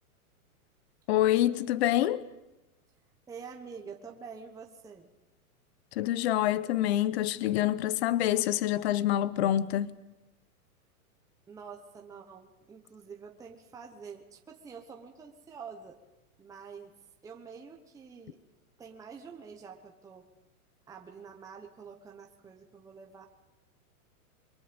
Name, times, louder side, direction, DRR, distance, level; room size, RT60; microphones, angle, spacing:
voice 1, 1.1-2.2 6.0-9.9, left 13 dB, 45° left, 1.0 m, -26 dB
voice 2, 3.3-5.1 11.5-16.0 16.4-16.9 17.2-18.4 18.8-20.3 20.9-23.3, right 6 dB, 10° right, 1.2 m, -47 dB
29.0 x 23.0 x 5.3 m
supercardioid pair, 160°, 44 cm